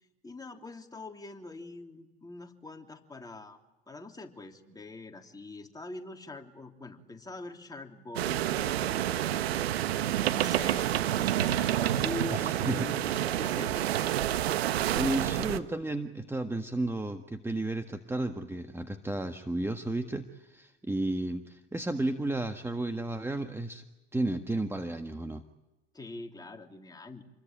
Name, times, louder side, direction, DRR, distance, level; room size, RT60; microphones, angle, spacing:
voice 1, 0.2-3.6 3.9-9.6 10.3-13.0 13.4-13.9 25.9-27.2, left 3 dB, 10° left, 3 dB, 3.3 m, -44 dB
sound 1, 8.2-15.6, right 12 dB, 80° right, 1.3 m, -28 dB
voice 2, 12.3-13.2 15.0-23.8 24.1-25.4, right 2 dB, 10° right, 6 dB, 1.6 m, -33 dB
28.5 x 22.0 x 9.2 m, 1.0 s
hypercardioid pair, 80°, 31 cm